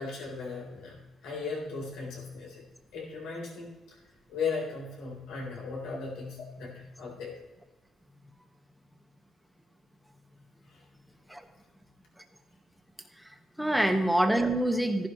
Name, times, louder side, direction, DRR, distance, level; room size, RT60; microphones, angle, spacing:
voice 1, 0.0-2.6 2.9-4.0 4.3-7.3 10.7-10.8 13.7-13.9, left 4 dB, 90° left, -2 dB, 3.8 m, -37 dB
voice 2, 13.2-15.1, right 1 dB, ahead, 5 dB, 1.4 m, -26 dB
14.5 x 11.0 x 3.1 m, 1.2 s
cardioid pair, 90°, 0 cm